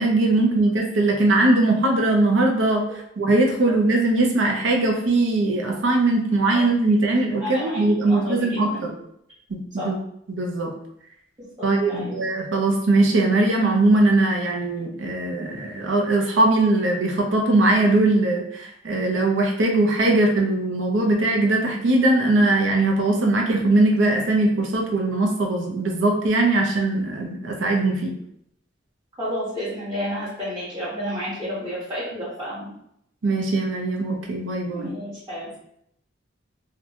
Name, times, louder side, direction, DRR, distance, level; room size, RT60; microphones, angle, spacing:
voice 1, 0.0-2.8 3.2-8.9 9.5-10.0 10.3-10.7 11.6-28.1 33.2-34.9, right 2 dB, 90° right, 1 dB, 0.6 m, -20 dB
voice 2, 7.4-8.8 9.7-9.9 11.4-12.2 29.2-32.7 34.7-35.5, equal, 20° right, -11 dB, 0.8 m, -31 dB
2.8 x 2.1 x 2.7 m, 0.74 s
head